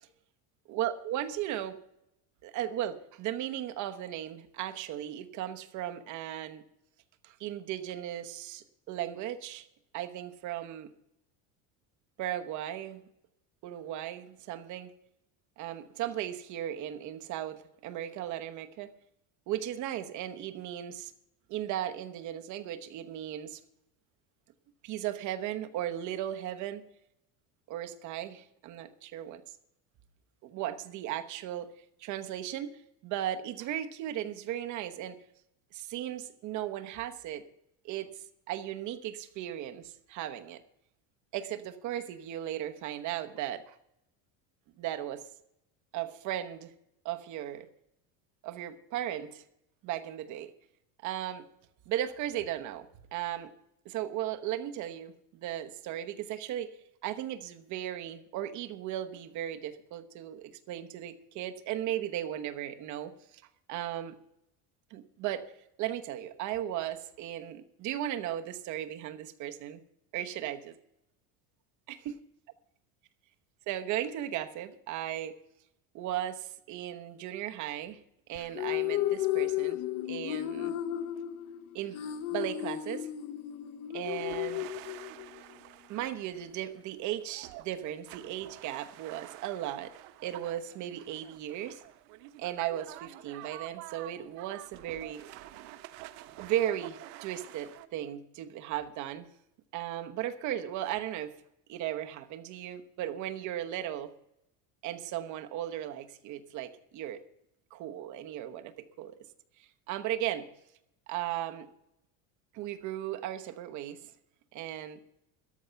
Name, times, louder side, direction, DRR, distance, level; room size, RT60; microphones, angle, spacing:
voice 1, 0.7-1.8 2.4-6.6 7.2-9.6 9.9-10.9 12.2-13.0 13.6-14.9 15.6-18.9 19.5-21.1 21.5-23.6 24.8-26.8 27.7-29.4 30.4-31.7 32.0-32.7 33.0-35.2 35.7-37.4 37.8-40.6 41.3-43.8 44.8-45.2 45.9-46.7 47.0-47.7 48.4-49.4 49.8-50.5 51.0-51.5 51.9-53.5 53.8-56.7 57.0-63.4 63.7-64.1 64.9-65.4 65.8-69.8 70.1-70.7 71.9-72.0 73.7-75.3 75.9-78.0 78.3-79.8 80.1-80.7 81.7-82.0 82.3-83.1 83.9-84.7 85.9-89.9 90.2-91.8 92.4-95.2 96.4-99.3 99.7-101.3 101.7-104.1 104.8-107.2 107.7-109.1 109.6-110.5 111.1-111.7 112.5-114.0 114.5-115.0, right 12 dB, 45° right, 8 dB, 1.0 m, -36 dB
sound 1, 78.4-85.4, left 13 dB, 50° left, 0.7 m, -33 dB
sound 2, 84.0-97.9, right 15 dB, 80° right, 1.0 m, -48 dB
13.5 x 11.0 x 5.7 m, 0.80 s
cardioid pair, 165°, 42 cm